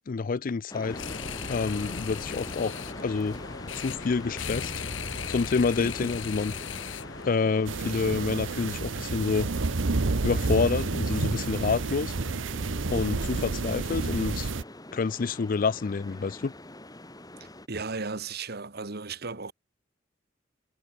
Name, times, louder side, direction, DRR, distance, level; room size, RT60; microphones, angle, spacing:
voice 1, 0.1-1.0 1.5-2.7 3.0-3.4 3.7-4.8 5.3-6.5 7.3-9.5 10.2-12.1 12.9-14.5 14.9-16.5, left 4 dB, 45° left, 0.4 m, -28 dB
sound 1, 0.7-17.7, left 1 dB, 20° left, 3.6 m, -44 dB
sound 2, 0.9-7.3, left 5 dB, 85° left, 2.1 m, -37 dB
voice 2, 5.8-6.1 17.7-19.5, right 4 dB, 55° right, 1.6 m, -35 dB
sound 3, 7.7-14.6, right 3 dB, 75° right, 0.9 m, -29 dB
head